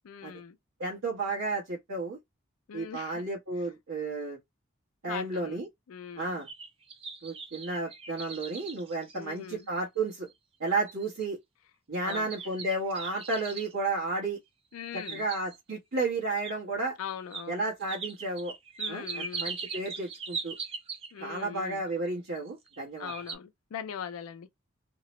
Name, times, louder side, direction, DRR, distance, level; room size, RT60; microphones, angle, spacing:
voice 1, 0.0-0.6 2.7-3.3 5.1-6.4 9.1-9.7 12.0-12.3 14.7-15.3 17.0-17.6 18.8-19.5 21.1-21.8 23.0-24.5, left 8 dB, 90° left, 0.4 m, -41 dB
voice 2, 0.8-2.2 2.7-4.4 5.0-5.7 6.2-6.5 7.2-10.3 10.6-11.4 11.9-14.4 14.9-17.0 17.5-18.5 18.9-20.5 21.2-23.1, right 3 dB, 80° right, 1.1 m, -32 dB
sound 1, 6.2-9.8 10.3-10.4 10.9-11.2 12.1-13.7 14.7-15.7 16.4-16.5 17.3-17.5 17.9-21.3 22.4-22.8 23.1-23.4, right 5 dB, 25° right, 0.3 m, -40 dB
2.8 x 2.0 x 3.0 m
head